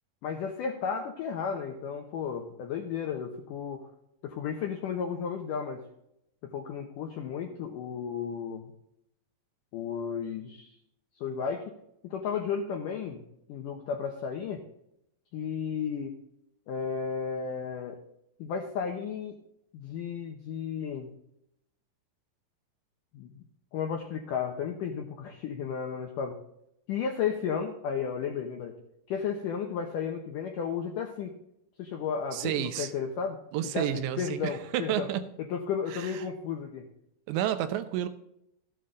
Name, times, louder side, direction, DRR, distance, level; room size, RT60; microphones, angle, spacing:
voice 1, 0.2-3.8 4.2-5.8 6.4-8.6 9.7-10.8 11.2-11.7 12.0-13.2 13.5-14.6 15.3-16.1 16.7-18.0 18.4-19.4 19.7-21.1 23.1-23.3 23.7-26.4 26.9-28.7 29.1-31.3 31.8-33.4 33.7-35.1 35.5-36.9, left 6 dB, 80° left, 3 dB, 1.9 m, -33 dB
voice 2, 32.3-32.9 33.5-35.3 35.9-36.1 37.3-38.1, right 11 dB, 85° right, 10 dB, 3.0 m, -30 dB
14.0 x 8.4 x 3.8 m, 0.79 s
omnidirectional pair, 5.1 m